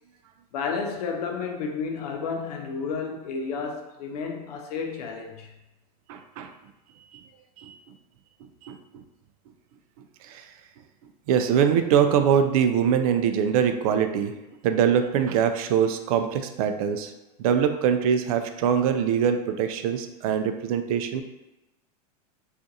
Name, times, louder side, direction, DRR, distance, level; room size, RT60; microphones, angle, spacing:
voice 1, 0.5-5.5, left 5 dB, 75° left, 3 dB, 0.6 m, -31 dB
voice 2, 6.1-6.5 7.1-7.3 7.6-7.8 8.6-9.0 10.2-10.4 11.3-14.3 14.6-17.1 17.4-21.2, right 8 dB, 65° right, 8 dB, 0.4 m, -23 dB
3.7 x 2.5 x 2.7 m, 1.0 s
supercardioid pair, 140°, 20 cm